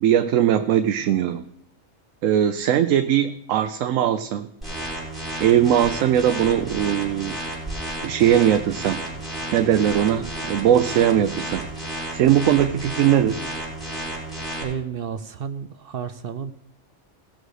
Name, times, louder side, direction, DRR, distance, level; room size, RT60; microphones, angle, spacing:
voice 1, 0.0-1.4 2.2-4.5 5.4-7.3 8.0-9.0 9.5-11.7 12.1-13.4, right 10 dB, 80° right, 9 dB, 1.0 m, -20 dB
sound 1, 4.6-14.6, right 1 dB, ahead, 4.7 m, -32 dB
voice 2, 14.6-16.5, right 7 dB, 60° right, 11 dB, 0.6 m, -31 dB
18.0 x 6.3 x 4.9 m, 0.74 s
omnidirectional pair, 1.3 m